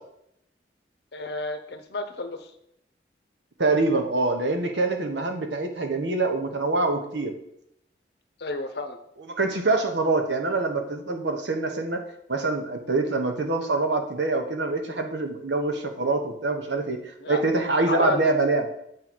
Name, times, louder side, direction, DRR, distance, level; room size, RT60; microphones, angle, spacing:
voice 1, 1.1-2.5 8.4-9.0 17.2-17.4 17.8-18.2, left 2 dB, 65° left, 8 dB, 0.8 m, -31 dB
voice 2, 3.6-7.3 9.4-12.0 12.3-17.0 17.3-18.6, right 3 dB, 80° right, 5 dB, 1.0 m, -25 dB
7.6 x 3.8 x 6.1 m, 0.77 s
head